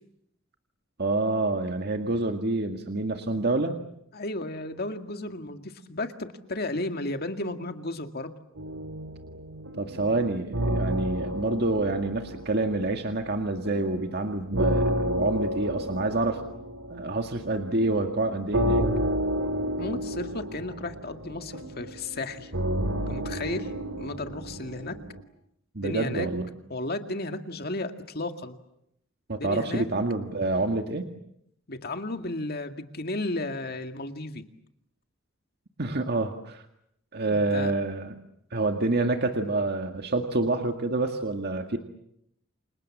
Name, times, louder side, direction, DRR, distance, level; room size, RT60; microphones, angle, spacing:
voice 1, 1.0-3.8 9.8-16.4 16.9-18.9 25.7-26.5 29.3-31.1 35.8-36.6 37.1-38.1 38.5-41.8, right 2 dB, 55° right, 5 dB, 1.9 m, -27 dB
voice 2, 4.1-8.4 19.8-22.5 23.1-23.7 24.0-25.0 25.8-26.3 26.7-28.6 29.4-29.9 31.7-34.4 37.3-37.8, left 2 dB, 50° left, 7 dB, 2.1 m, -34 dB
sound 1, 8.6-13.3 13.6-25.2, equal, 80° right, 3.0 m, -31 dB
29.0 x 26.5 x 7.3 m, 0.77 s
head